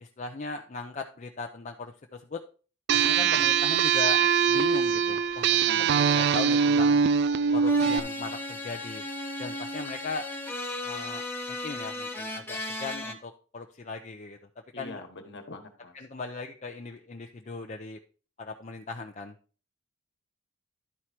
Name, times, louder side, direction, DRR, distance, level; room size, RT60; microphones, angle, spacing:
voice 1, 0.0-2.4 2.9-5.7 6.1-7.0 7.5-9.0 9.4-10.3 10.8-14.4 14.8-15.0 15.9-18.0 18.4-19.3, left 4 dB, 35° left, 3 dB, 0.5 m, -38 dB
sound 1, 2.9-8.0, right 6 dB, 50° right, 0.3 m, -23 dB
voice 2, 3.2-3.5 5.6-6.1 14.7-15.9, left 2 dB, 55° left, 6 dB, 1.4 m, -44 dB
sound 2, 7.6-13.1, left 1 dB, 10° left, 0.9 m, -36 dB
11.0 x 4.7 x 4.3 m, 0.38 s
head